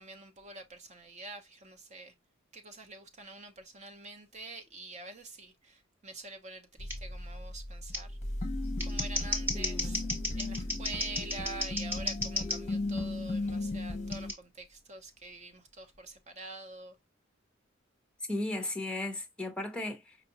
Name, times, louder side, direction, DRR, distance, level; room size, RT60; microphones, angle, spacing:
voice 1, 0.0-2.1 2.5-8.2 8.8-10.0 10.3-17.0, right 2 dB, 35° right, 1.0 m, -46 dB
sound 1, 6.8-14.3, left 2 dB, 35° left, 0.9 m, -36 dB
Scissors, 6.9-7.0 7.9-8.0 8.6-12.6 14.1-14.3, left 1 dB, 10° right, 1.3 m, -34 dB
voice 2, 9.5-10.0 18.3-20.2, left 2 dB, 5° left, 0.9 m, -36 dB
5.3 x 2.5 x 2.9 m
head